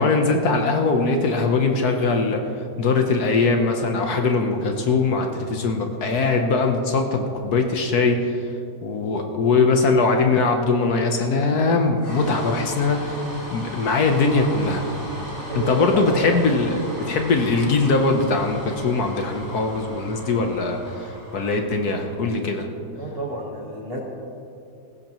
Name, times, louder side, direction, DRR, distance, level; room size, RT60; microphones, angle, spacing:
voice 1, 0.0-2.4 2.8-8.2 8.8-13.2 13.5-14.9 15.5-22.7, left 3 dB, 65° left, 4 dB, 1.4 m, -21 dB
sound 1, 12.0-22.3, equal, 80° left, 4.5 m, -37 dB
voice 2, 15.5-16.2 23.0-24.0, right 1 dB, 35° right, 0 dB, 1.5 m, -30 dB
17.0 x 15.5 x 3.0 m, 2.7 s
omnidirectional pair, 1.9 m